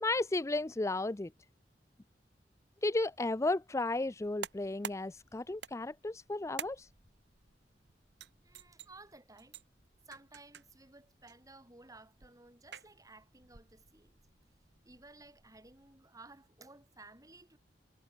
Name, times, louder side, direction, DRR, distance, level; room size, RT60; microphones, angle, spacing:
voice 1, 0.0-1.3 2.8-6.9, left 2 dB, 15° left, 0.5 m, -33 dB
sound 1, 4.2-16.0, right 6 dB, 80° right, 2.0 m, -51 dB
voice 2, 8.4-9.6 10.1-14.2 14.8-17.6, right 2 dB, 20° right, 3.1 m, -56 dB
head